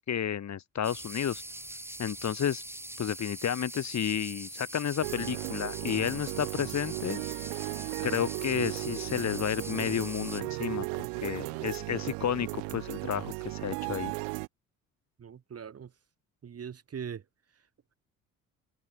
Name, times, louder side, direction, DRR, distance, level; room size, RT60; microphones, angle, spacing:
voice 1, 0.1-1.4 2.0-2.6 3.0-7.2 8.0-10.9 11.2-14.1, left 9 dB, 45° left, 3.3 m, -31 dB
sound 1, 0.8-10.4, right 1 dB, 5° right, 5.2 m, -43 dB
sound 2, 5.0-14.5, right 40 dB or more, 70° right, 1.6 m, -36 dB
voice 2, 15.2-15.9 16.4-17.2, right 7 dB, 40° right, 2.4 m, -41 dB
hypercardioid pair, 55°, 38 cm